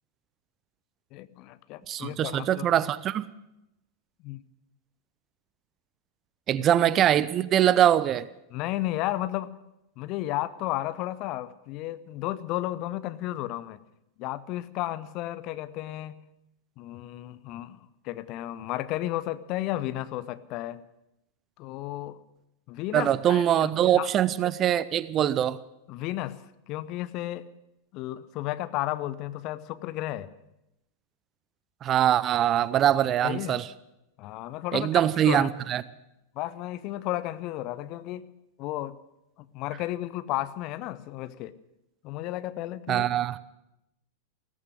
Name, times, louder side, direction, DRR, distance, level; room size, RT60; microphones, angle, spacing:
voice 1, 1.1-2.7 4.2-4.4 8.5-9.5 10.0-13.8 14.2-16.2 16.8-20.8 21.6-22.2 22.7-24.1 25.9-26.4 26.7-27.5 27.9-30.3 33.2-33.6 34.2-35.5 36.3-38.3 38.6-39.0 39.4-41.5 42.0-43.1, left 15 dB, 40° left, 0.7 m, -33 dB
voice 2, 1.9-3.3 6.5-8.3 22.9-25.6 31.8-33.7 34.7-35.8 42.9-43.4, right 11 dB, 30° right, 0.5 m, -23 dB
16.0 x 14.0 x 6.4 m
figure-of-eight pair, 90°, 0 cm